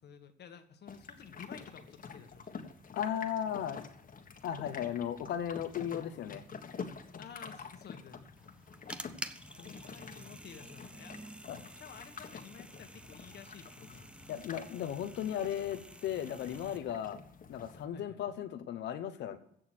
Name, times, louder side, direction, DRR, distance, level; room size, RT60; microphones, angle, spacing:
voice 1, 0.0-2.6 7.2-8.2 9.5-11.2 11.8-14.1 16.6-16.8 17.9-18.2, left 7 dB, 70° left, 7 dB, 1.6 m, -52 dB
sound 1, 0.9-17.9, left 5 dB, 50° left, 1.5 m, -48 dB
voice 2, 2.9-3.9 4.4-6.4 11.5-11.6 14.3-17.2 17.5-19.4, left 9 dB, 90° left, 8 dB, 1.1 m, -36 dB
sound 2, 8.4-16.8, right 1 dB, 5° right, 0.8 m, -49 dB
16.0 x 6.4 x 6.2 m, 0.74 s
cardioid pair, 90°, 18 cm